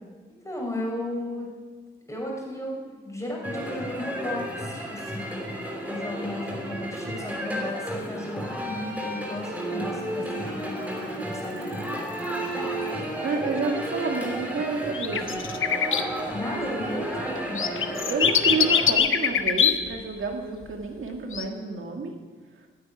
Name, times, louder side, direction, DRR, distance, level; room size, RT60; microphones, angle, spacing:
voice 1, 0.4-1.5 2.1-5.4 5.8-11.7 16.3-17.6, left 1 dB, 15° left, -2 dB, 4.7 m, -35 dB
sound 1, 3.4-18.9, right 1 dB, 5° right, 3.0 m, -32 dB
voice 2, 13.2-15.4 18.1-22.1, right 4 dB, 70° right, 2 dB, 2.0 m, -30 dB
sound 2, 14.9-16.0 17.6-19.9 21.3-21.4, left 8 dB, 75° left, 0.9 m, -22 dB
14.5 x 9.4 x 9.6 m, 1.5 s
wide cardioid pair, 155°, 21 cm